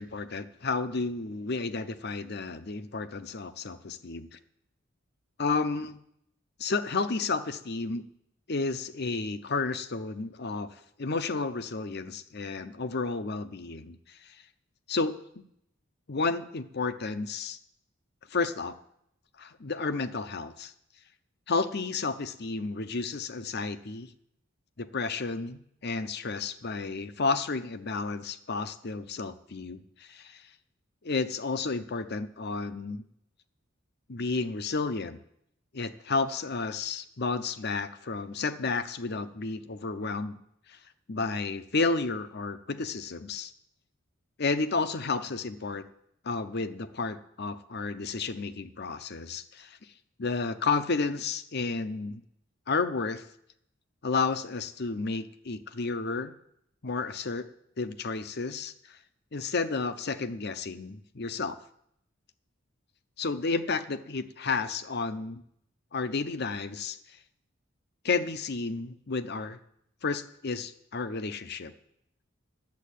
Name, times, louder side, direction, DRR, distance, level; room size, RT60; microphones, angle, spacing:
voice 1, 0.0-4.4 5.4-6.0 6.6-8.0 8.5-14.4 14.9-15.4 16.1-17.6 18.3-18.7 19.4-20.7 21.5-24.1 24.8-30.5 31.0-33.1 34.1-35.2 35.7-40.4 40.7-40.8 41.1-43.5 44.4-45.9 46.2-49.8 50.2-52.2 52.7-53.2 54.0-56.3 56.8-57.5 57.8-59.0 59.3-61.6 63.2-65.4 65.9-67.2 68.0-69.6 70.0-71.7, left 4 dB, 55° left, 11 dB, 0.8 m, -32 dB
10.5 x 8.3 x 8.4 m, 0.74 s
head